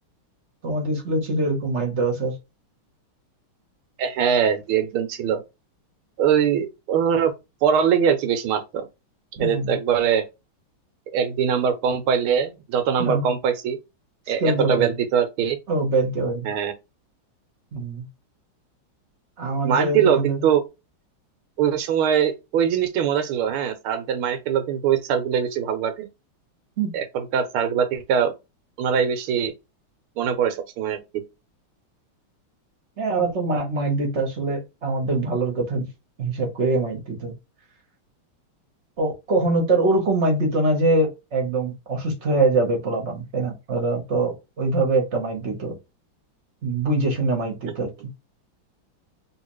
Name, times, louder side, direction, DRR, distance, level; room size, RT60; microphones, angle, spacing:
voice 1, 0.6-2.3 9.4-9.7 13.0-13.3 14.4-14.9 15.7-16.5 17.7-18.0 19.4-20.4 26.8-26.9 33.0-35.9 36.2-37.3 39.0-45.8 46.6-47.9, right 2 dB, 40° right, 1.1 m, -23 dB
voice 2, 4.0-5.4 6.2-7.3 7.6-8.9 9.4-10.3 11.1-13.8 14.3-15.6 16.4-16.7 19.6-20.6 21.6-26.1 26.9-28.3 28.8-29.5 30.2-31.2, right 8 dB, 85° right, 1.6 m, -22 dB
3.2 x 3.0 x 3.0 m
omnidirectional pair, 2.3 m